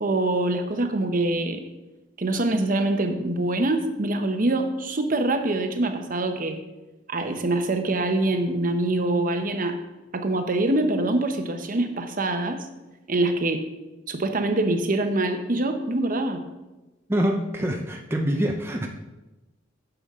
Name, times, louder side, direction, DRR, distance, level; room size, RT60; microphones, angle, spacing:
voice 1, 0.0-1.6 2.2-6.6 7.1-9.8 10.1-12.6 13.1-13.7 14.1-16.4 17.6-17.7, right 2 dB, 45° right, 6 dB, 0.8 m, -24 dB
voice 2, 17.1-18.9, equal, 15° right, 2 dB, 0.6 m, -25 dB
9.5 x 6.9 x 3.6 m, 1.1 s
head